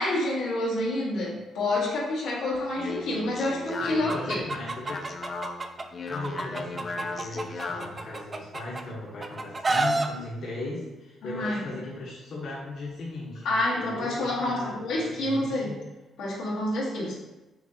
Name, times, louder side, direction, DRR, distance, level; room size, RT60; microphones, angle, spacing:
voice 1, 0.0-4.4 11.2-11.6 13.4-15.7 16.2-17.2, left 1 dB, 90° left, -6 dB, 1.3 m, -28 dB
Speech, 2.5-8.0, left 3 dB, 40° left, 0.5 m, -37 dB
voice 2, 3.8-5.1 6.1-15.8, left 2 dB, 65° left, -6 dB, 1.1 m, -37 dB
Chicken rooster, 4.1-5.8 6.2-8.8 9.2-10.1, right 2 dB, 30° right, 0.4 m, -29 dB
5.9 x 2.7 x 2.8 m, 1.1 s
cardioid pair, 90°, 0 cm